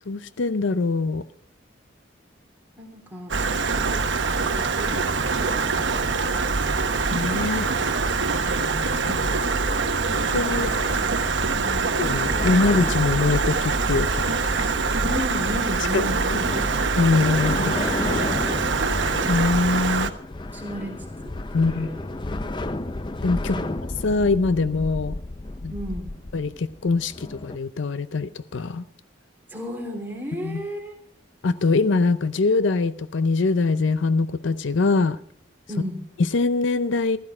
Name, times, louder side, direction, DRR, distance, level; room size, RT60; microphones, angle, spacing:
voice 1, 0.1-1.2 7.1-7.7 9.1-9.2 10.1-10.7 12.0-14.7 15.9-16.0 16.3-16.4 17.0-17.7 19.3-20.1 21.5-21.9 22.3-22.4 23.2-23.6 24.0-25.2 25.6-25.7 26.3-28.8 30.4-30.7 31.4-35.2 36.2-37.2, left 3 dB, 75° left, 0.5 m, -23 dB
voice 2, 2.8-3.3 3.7-6.9 8.2-10.0 11.5-12.0 15.0-16.4 20.5-22.0 23.5-23.7 25.7-26.1 29.5-30.9 35.7-36.0, left 1 dB, 10° right, 3.2 m, -35 dB
Stream, 3.3-20.1, right 4 dB, 70° right, 1.1 m, -24 dB
sound 1, 10.1-27.6, left 2 dB, 25° left, 0.5 m, -33 dB
15.5 x 13.0 x 4.9 m
head